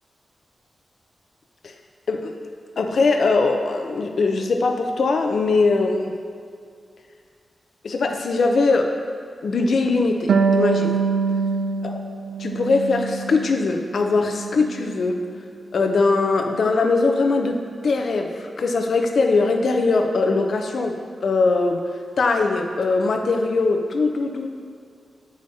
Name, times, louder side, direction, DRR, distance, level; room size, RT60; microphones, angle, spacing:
voice 1, 2.8-6.1 7.8-9.0 9.4-11.0 11.8-12.0 12.4-15.2 15.7-21.8 22.2-24.5, left 3 dB, 60° left, 4 dB, 0.5 m, -21 dB
Harp, 10.3-13.7 14.0-15.1, right 5 dB, 85° right, 0.3 m, -24 dB
8.1 x 4.9 x 2.7 m, 2.2 s
wide cardioid pair, 155°, 0 cm